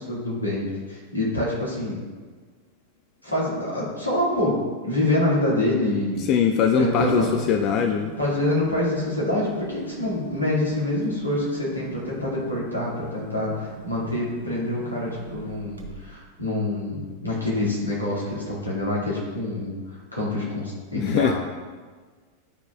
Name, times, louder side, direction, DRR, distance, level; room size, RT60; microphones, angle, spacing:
voice 1, 0.0-2.0 3.2-6.3 6.8-7.3 8.2-21.3, left 1 dB, 85° left, -7 dB, 1.9 m, -26 dB
voice 2, 6.3-8.1 21.0-21.3, left 7 dB, 40° left, 6 dB, 0.3 m, -21 dB
sound 1, 7.0-16.2, right 3 dB, 75° right, 0.8 m, -40 dB
10.5 x 4.7 x 2.3 m, 1.4 s
figure-of-eight pair, 90°, 0 cm